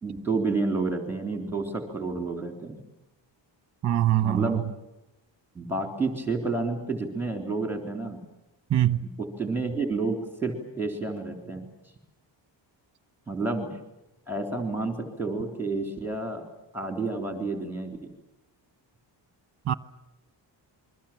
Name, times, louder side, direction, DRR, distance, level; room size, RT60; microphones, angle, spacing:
voice 1, 0.0-2.8 4.2-4.6 5.6-8.2 9.2-11.7 13.3-13.8 14.3-16.4 16.7-18.0, right 3 dB, 5° right, 3.6 m, -30 dB
voice 2, 3.8-4.6 8.7-9.1 19.7-19.8, right 12 dB, 40° right, 0.9 m, -23 dB
28.5 x 23.0 x 7.5 m
wide cardioid pair, 175°, 44 cm